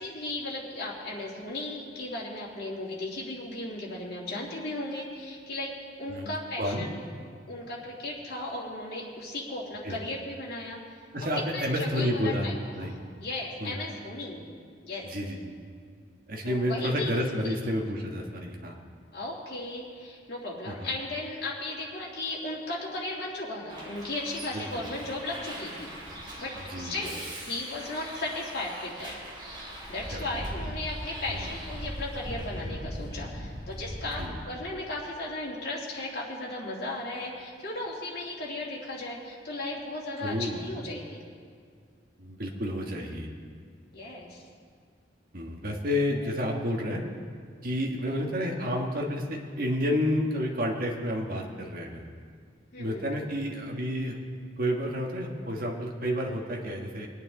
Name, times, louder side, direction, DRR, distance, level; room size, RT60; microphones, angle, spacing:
voice 1, 0.0-7.1 7.5-10.8 11.3-12.5 12.8-14.5 14.8-15.1 16.4-17.1 17.4-17.6 19.1-25.9 26.4-29.2 29.9-41.2 43.9-44.4 52.7-53.1, left 2 dB, 60° left, -5 dB, 2.8 m, -36 dB
voice 2, 11.1-12.5 12.7-12.9 13.6-13.8 15.0-15.5 16.3-18.7 20.7-20.9 24.5-24.8 26.7-27.0 30.1-30.4 31.3-31.5 34.2-34.4 40.2-40.7 42.2-43.3 45.3-47.0 47.6-52.0 52.8-54.2 54.6-57.1, equal, 50° right, -1 dB, 1.5 m, -30 dB
Bus, 23.7-34.2, equal, 25° right, 2.6 m, -40 dB
23.0 x 9.2 x 3.9 m, 2.1 s
head